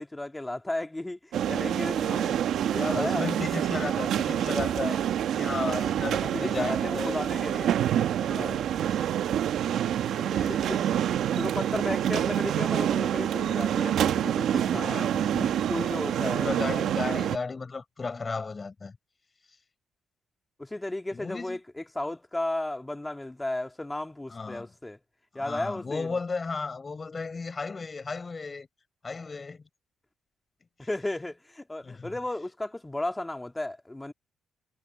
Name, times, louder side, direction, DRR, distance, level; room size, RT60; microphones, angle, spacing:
voice 1, 0.0-3.3 3.8-3.9 6.1-7.8 10.5-14.8 15.4-16.5 20.6-25.0 25.3-26.1 30.8-34.1, left 1 dB, 10° left, 2.3 m, -34 dB
sound 1, 1.3-17.4, right 10 dB, 75° right, 1.2 m, -27 dB
voice 2, 2.0-2.4 2.7-7.2 8.2-9.2 10.1-10.9 14.7-15.6 16.2-19.0 21.1-21.6 24.3-24.7 25.3-28.7 29.0-29.6 31.8-32.1, left 4 dB, 30° left, 5.4 m, -35 dB
cardioid pair, 90°, 0 cm